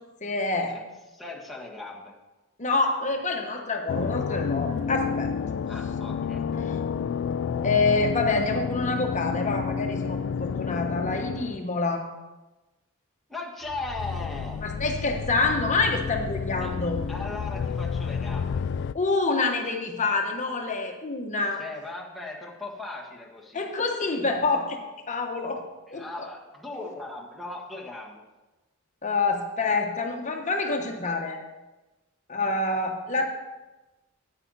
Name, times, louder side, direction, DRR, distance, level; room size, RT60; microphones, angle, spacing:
voice 1, 0.2-0.8 2.6-5.3 6.6-6.8 7.6-12.1 14.6-17.0 18.9-21.6 23.5-24.8 25.1-25.6 25.9-26.0 29.0-31.4 32.3-33.2, left 3 dB, 35° left, 3 dB, 1.2 m, -27 dB
voice 2, 1.1-2.1 5.7-6.4 13.3-14.7 16.6-16.7 17.1-18.6 21.6-23.7 25.9-28.2 29.6-29.7 32.4-32.6, left 2 dB, ahead, -4 dB, 1.5 m, -38 dB
sound 1, 3.9-11.7 13.7-18.9, left 6 dB, 60° left, 0.3 m, -30 dB
9.9 x 9.0 x 4.1 m, 1.1 s
head